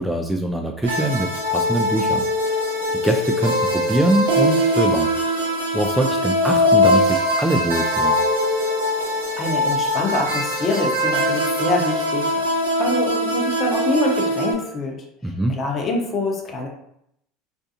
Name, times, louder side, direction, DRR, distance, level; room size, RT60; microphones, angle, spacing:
voice 1, 0.0-2.6 3.0-5.1 5.7-8.2 15.2-15.6, right 1 dB, 5° right, 2 dB, 0.3 m, -23 dB
sound 1, 0.8-14.5, equal, 90° right, 0.5 m, -21 dB
voice 2, 9.4-12.4 12.8-15.0 15.5-16.7, left 2 dB, 35° left, 0 dB, 0.8 m, -25 dB
2.5 x 2.3 x 2.7 m, 0.75 s
hypercardioid pair, 85°, 0 cm